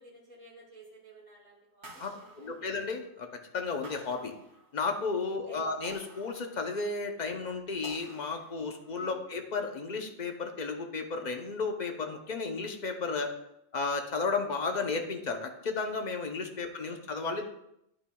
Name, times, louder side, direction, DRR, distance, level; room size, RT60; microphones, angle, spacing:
voice 1, 0.0-2.5 5.5-5.6 8.8-9.2 16.5-16.9, right 2 dB, 10° left, -7 dB, 2.1 m, -54 dB
sound 1, 1.8-3.2 3.8-5.0 5.8-7.1 7.8-9.0, right 1 dB, 65° right, 1.4 m, -52 dB
voice 2, 2.4-3.3 3.5-4.3 4.7-13.3 13.7-17.5, left 4 dB, 45° left, 4 dB, 0.7 m, -33 dB
9.7 x 5.8 x 2.3 m, 0.80 s
omnidirectional pair, 1.3 m